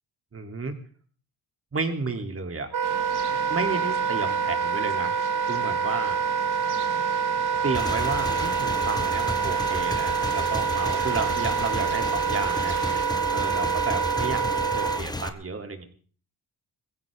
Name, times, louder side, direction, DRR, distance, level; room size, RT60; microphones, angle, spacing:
voice 1, 0.3-0.8 1.7-2.7 3.5-5.1 5.5-6.2 7.6-12.8 13.3-14.4 14.8-15.8, right 4 dB, 35° right, 5 dB, 3.0 m, -32 dB
Wind instrument woodwind instrument, 2.7-15.0, right 6 dB, 55° right, 1.0 m, -26 dB
sound 1, 2.8-13.1, right 6 dB, 70° right, 2.2 m, -40 dB
Motorcycle / Engine, 7.7-15.3, left 2 dB, 10° left, 1.2 m, -33 dB
21.5 x 16.0 x 3.6 m, 0.42 s
cardioid pair, 100°, 40 cm